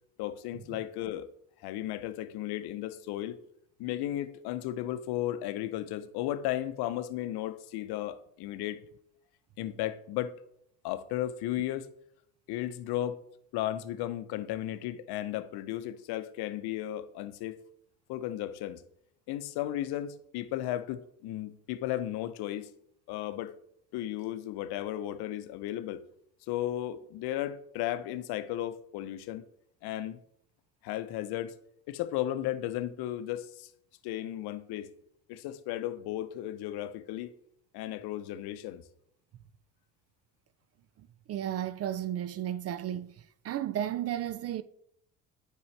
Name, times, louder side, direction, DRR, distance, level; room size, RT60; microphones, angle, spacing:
voice 1, 0.2-1.3 1.6-3.4 3.8-8.8 9.6-10.3 10.8-11.9 12.5-13.2 13.5-17.6 18.1-18.8 19.3-22.7 23.1-23.6 23.9-26.0 26.5-29.4 29.8-30.2 30.8-31.5 31.9-33.7 34.0-34.9 35.3-37.3 37.7-38.8, left 13 dB, 65° left, 0.7 m, -34 dB
voice 2, 41.3-43.2 43.4-44.6, right 11 dB, 35° right, 0.4 m, -33 dB
9.5 x 4.7 x 3.2 m
hypercardioid pair, 65°, 42 cm